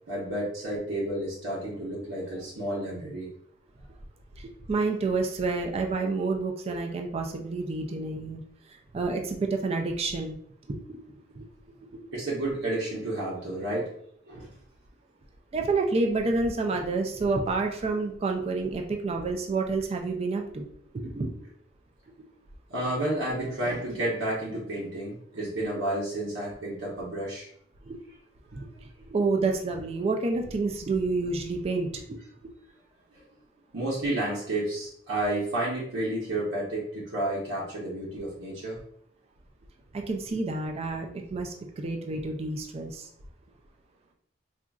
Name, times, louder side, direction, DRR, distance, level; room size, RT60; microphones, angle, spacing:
voice 1, 0.1-3.3 12.1-13.9 14.3-14.5 22.7-27.5 33.1-33.2 33.7-38.8, right 1 dB, 80° right, -6 dB, 0.9 m, -31 dB
voice 2, 4.4-8.4 8.9-10.4 10.9-11.4 15.5-20.7 21.0-21.5 27.8-28.0 28.5-28.7 29.0-32.2 39.9-43.1, right 3 dB, 30° right, 3 dB, 0.3 m, -29 dB
3.8 x 2.4 x 2.3 m, 0.65 s
head